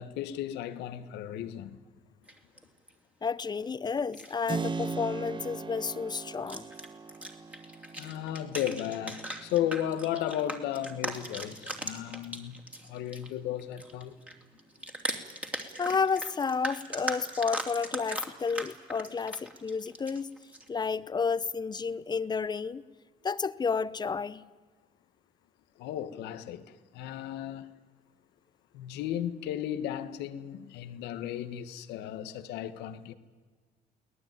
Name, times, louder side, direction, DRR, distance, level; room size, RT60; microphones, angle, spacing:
voice 1, 0.0-1.8 8.0-12.6 12.9-14.2 25.8-27.7 28.7-33.1, left 11 dB, 85° left, 1.4 m, -35 dB
sound 1, 2.3-2.9 4.0-4.4 4.6-4.9 5.3-5.5 6.3-13.3 13.6-20.7, right 1 dB, 10° right, 2.9 m, -39 dB
voice 2, 3.2-6.6 15.8-20.3 20.7-22.8 23.2-24.5, left 5 dB, 25° left, 0.8 m, -31 dB
Keyboard (musical), 4.5-13.0, right 4 dB, 30° right, 1.2 m, -41 dB
23.5 x 18.5 x 9.3 m
cardioid pair, 110°, 17 cm